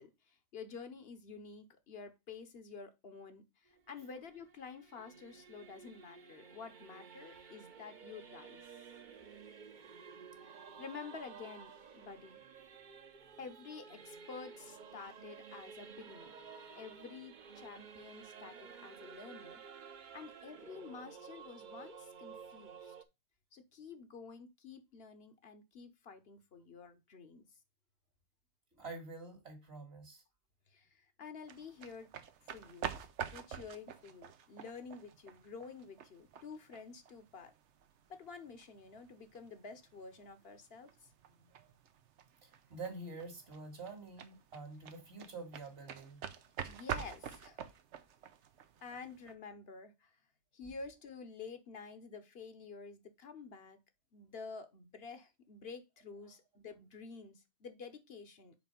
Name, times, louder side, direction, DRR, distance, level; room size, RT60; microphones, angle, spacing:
voice 1, 0.0-8.6 10.4-12.4 13.4-16.3 16.7-19.6 20.1-23.0 23.5-27.4 30.7-32.1 32.4-32.9 33.3-37.5 38.1-41.1 46.6-47.6 48.8-50.2 50.5-53.8 54.1-58.7, left 5 dB, 65° left, 1.1 m, -50 dB
Singing / Musical instrument, 3.7-23.0, right 6 dB, 50° right, 0.8 m, -53 dB
voice 2, 28.7-30.2 41.3-41.7 42.4-46.3 50.6-50.7 56.3-56.4, right 3 dB, 65° right, 2.1 m, -48 dB
sound 1, 31.4-49.3, right 8 dB, 90° right, 1.0 m, -47 dB
5.0 x 4.6 x 5.3 m
omnidirectional pair, 1.1 m